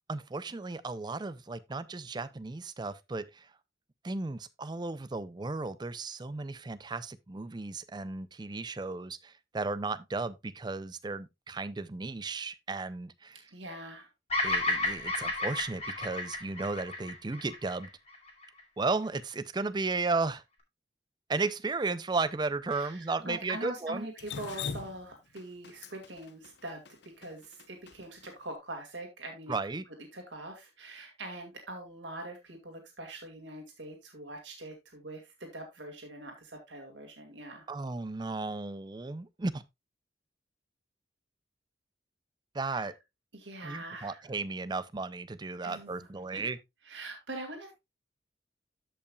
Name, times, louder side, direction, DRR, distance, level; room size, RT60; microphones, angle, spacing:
voice 1, 0.1-3.5 4.0-13.4 14.4-17.9 18.8-20.4 21.3-24.1 29.5-29.8 37.7-39.6 42.5-42.9 43.6-46.6, right 3 dB, 25° right, 0.5 m, -34 dB
voice 2, 13.5-14.1 22.7-26.8 27.2-29.6 30.1-37.7 42.7-42.9 43.3-44.3 45.6-46.5 46.8-47.8, right 1 dB, 80° right, 2.0 m, -43 dB
Bird vocalization bird call bird song, 14.3-18.6, left 2 dB, 35° left, 2.3 m, -32 dB
Drip, 24.2-28.3, left 6 dB, 65° left, 0.7 m, -41 dB
13.5 x 5.5 x 2.3 m
head